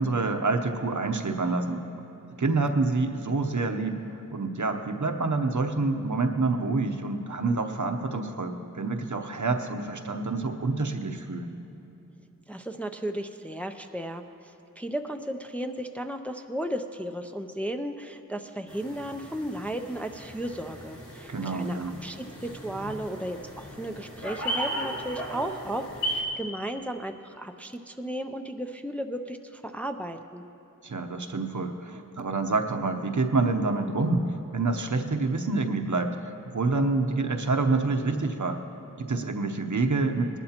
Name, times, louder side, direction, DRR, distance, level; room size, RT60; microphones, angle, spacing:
voice 1, 0.0-1.8 2.4-4.0 4.3-11.6 21.3-21.9 30.8-34.2 34.5-36.2 36.5-38.6 39.0-40.4, right 3 dB, 60° right, 5 dB, 0.8 m, -27 dB
voice 2, 12.5-30.4, right 1 dB, 5° left, 5 dB, 0.5 m, -35 dB
sound 1, 18.7-26.2, equal, 65° left, 3.4 m, -36 dB
20.0 x 12.0 x 2.9 m, 2.9 s
wide cardioid pair, 50°, 33 cm